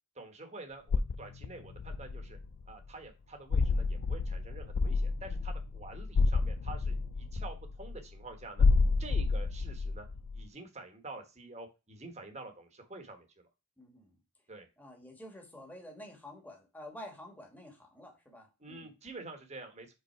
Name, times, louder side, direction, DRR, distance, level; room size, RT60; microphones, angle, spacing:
voice 1, 0.1-2.4 2.7-8.6 9.0-10.1 10.3-13.3 14.5-14.7 18.6-19.9, right 2 dB, 30° right, 5 dB, 1.2 m, -47 dB
sound 1, 0.9-2.6 3.5-8.0 8.6-10.4, left 4 dB, 60° left, 0.4 m, -30 dB
voice 2, 13.8-14.1 14.8-18.9, left 1 dB, 10° left, 2 dB, 1.5 m, -49 dB
5.5 x 4.1 x 4.4 m, 0.27 s
head